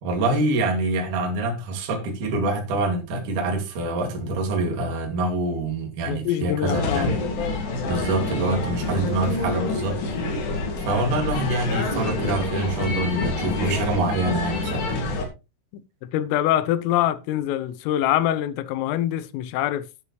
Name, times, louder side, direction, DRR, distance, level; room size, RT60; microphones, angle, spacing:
voice 1, 0.0-7.2 7.9-10.0 10.8-15.0, right 2 dB, 45° right, 3.4 m, -25 dB
voice 2, 6.1-7.2 16.0-19.9, left 12 dB, 90° left, 3.4 m, -24 dB
sound 1, 6.7-15.3, left 3 dB, 60° left, 4.2 m, -27 dB
11.0 x 9.7 x 3.2 m
omnidirectional pair, 5.8 m